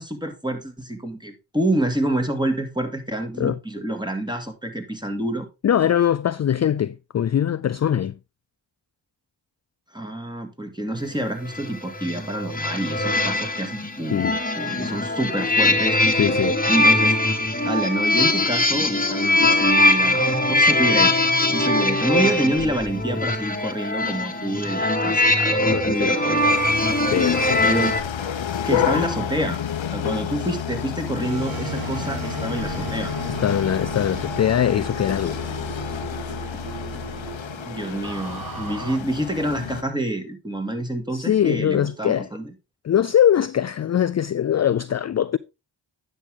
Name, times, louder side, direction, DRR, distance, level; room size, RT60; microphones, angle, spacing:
voice 1, 0.0-5.5 9.9-14.3 14.6-16.2 16.7-17.1 17.6-21.2 21.5-26.5 27.6-27.9 28.7-29.6 29.9-33.1 37.7-42.5, right 1 dB, 10° right, 2.2 m, -27 dB
voice 2, 5.6-8.2 14.1-14.4 16.2-16.6 25.7-26.1 27.1-27.6 33.4-35.4 41.1-42.3 42.8-45.4, left 9 dB, 35° left, 0.4 m, -22 dB
sound 1, 11.4-28.0, left 2 dB, 15° left, 1.6 m, -21 dB
sound 2, 26.4-39.8, left 8 dB, 75° left, 1.0 m, -30 dB
sound 3, 31.2-39.0, right 5 dB, 45° right, 1.6 m, -35 dB
9.8 x 6.6 x 3.7 m
cardioid pair, 40°, 47 cm